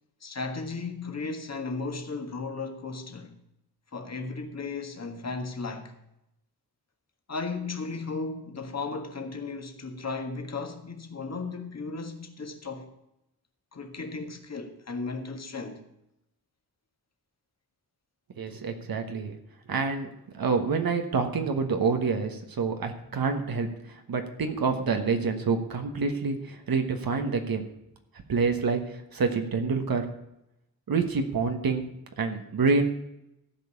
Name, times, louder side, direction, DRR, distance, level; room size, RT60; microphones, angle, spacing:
voice 1, 0.2-3.3 3.9-5.9 7.3-12.9 13.7-15.8, left 4 dB, 45° left, 1.7 m, -35 dB
voice 2, 18.4-19.4 19.7-20.1 20.3-27.6 28.3-28.8 29.1-30.1 30.9-31.9 32.2-32.8, right 4 dB, 70° right, 1.4 m, -27 dB
14.5 x 5.4 x 8.4 m
wide cardioid pair, 130°, 37 cm